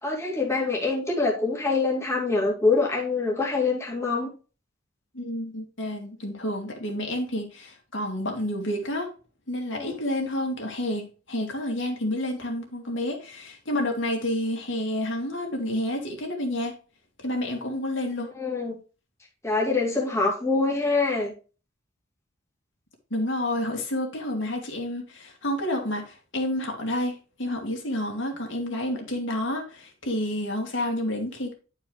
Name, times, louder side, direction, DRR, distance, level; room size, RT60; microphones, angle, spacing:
voice 1, 0.0-4.3 9.7-9.9 18.4-18.8 19.4-21.3, left 3 dB, 15° left, -4 dB, 2.4 m, -25 dB
voice 2, 5.1-9.1 9.5-16.7 17.2-18.3 23.1-31.5, left 1 dB, 65° left, 2 dB, 2.4 m, -29 dB
11.5 x 4.8 x 3.2 m, 0.34 s
head